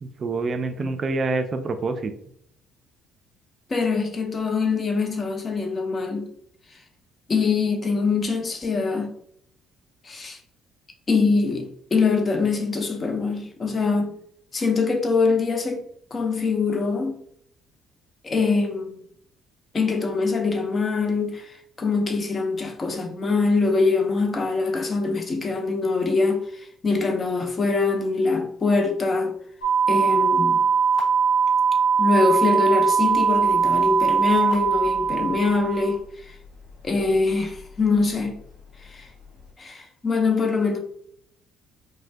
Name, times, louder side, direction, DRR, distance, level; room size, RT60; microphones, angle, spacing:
voice 1, 0.0-2.1, right 3 dB, 40° right, 0.3 m, -26 dB
voice 2, 3.7-6.3 7.3-9.2 10.0-10.4 11.1-14.1 14.5-15.8 16.1-17.1 18.2-19.0 19.7-21.5 21.8-26.4 26.8-29.3 29.9-30.7 32.0-36.0 36.8-38.4 38.9-39.1 39.6-40.8, left 4 dB, 35° left, 0.6 m, -23 dB
sound 1, 29.6-36.0, right 6 dB, 80° left, 0.9 m, -21 dB
2.4 x 2.1 x 3.3 m
hypercardioid pair, 50°, 0 cm